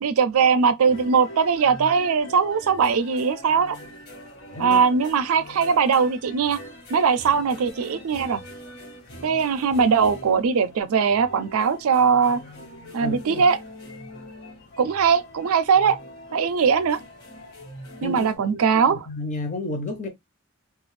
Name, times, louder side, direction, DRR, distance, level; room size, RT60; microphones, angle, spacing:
voice 1, 0.0-3.8 4.6-6.6 6.9-8.4 9.2-12.4 12.9-13.6 14.8-16.0 16.3-17.0 18.0-19.1, right 6 dB, 85° right, 0.4 m, -20 dB
sound 1, 0.9-18.4, equal, 50° left, 1.2 m, -43 dB
voice 2, 4.5-5.0 13.0-13.4 18.0-20.1, left 2 dB, 35° left, 0.7 m, -32 dB
2.4 x 2.3 x 3.2 m
head